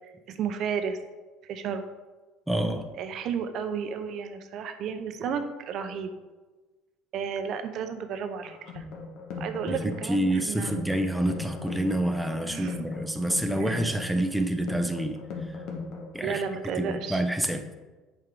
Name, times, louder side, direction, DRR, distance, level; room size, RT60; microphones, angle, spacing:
voice 1, 0.3-1.0 1.4-1.8 3.0-6.1 7.1-8.8 9.4-10.7 12.5-12.8 13.6-13.8 16.2-17.2 17.5-17.6, right 7 dB, 55° right, 8 dB, 0.7 m, -32 dB
voice 2, 2.5-2.9 9.7-15.6 16.1-16.4 16.8-17.8, right 1 dB, 5° right, 5 dB, 0.6 m, -28 dB
sound 1, 8.4-16.4, left 4 dB, 65° left, 1.4 m, -38 dB
7.7 x 4.6 x 3.7 m, 1.2 s
supercardioid pair, 110°, 0 cm